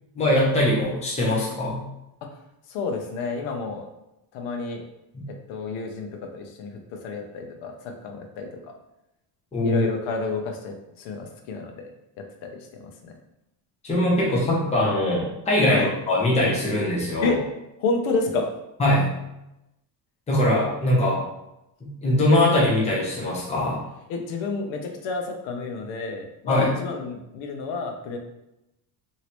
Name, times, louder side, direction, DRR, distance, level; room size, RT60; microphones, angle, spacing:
voice 1, 0.1-1.8 5.1-5.3 9.5-9.8 13.8-17.4 18.8-19.1 20.3-21.2 21.8-23.8 26.5-26.7, left 1 dB, 15° left, -5 dB, 0.8 m, -22 dB
voice 2, 2.7-3.9 4.3-4.8 5.5-8.7 9.6-11.9 12.2-13.1 15.7-15.9 17.2-17.4 17.8-18.5 24.1-28.2, left 4 dB, 75° left, 3 dB, 0.8 m, -30 dB
3.0 x 2.8 x 3.0 m, 0.90 s
cardioid pair, 140°, 48 cm